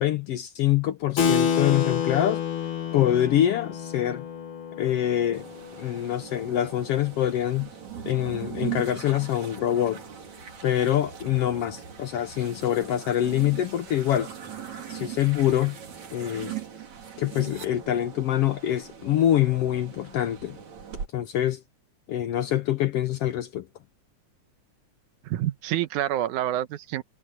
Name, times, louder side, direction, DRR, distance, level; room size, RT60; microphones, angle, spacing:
voice 1, 0.0-2.4 2.9-4.2 4.8-5.4 5.8-7.7 8.0-10.0 10.6-14.3 14.9-15.8 16.1-16.5 17.2-20.6 21.1-21.6 22.1-23.7, left 12 dB, 70° left, 1.5 m, -25 dB
Keyboard (musical), 1.2-7.2, left 7 dB, 50° left, 2.1 m, -29 dB
sound 1, 5.3-21.1, right 9 dB, 70° right, 4.5 m, -40 dB
voice 2, 25.2-27.0, right 13 dB, 85° right, 2.4 m, -27 dB
omnidirectional pair, 3.5 m